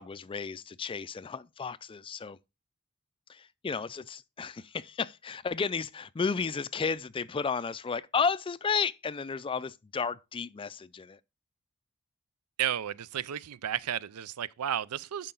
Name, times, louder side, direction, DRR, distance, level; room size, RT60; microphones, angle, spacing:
voice 1, 0.0-2.4 3.3-11.2, left 5 dB, 25° left, 0.4 m, -33 dB
voice 2, 12.6-15.3, right 10 dB, 90° right, 0.5 m, -33 dB
11.0 x 5.7 x 3.8 m
head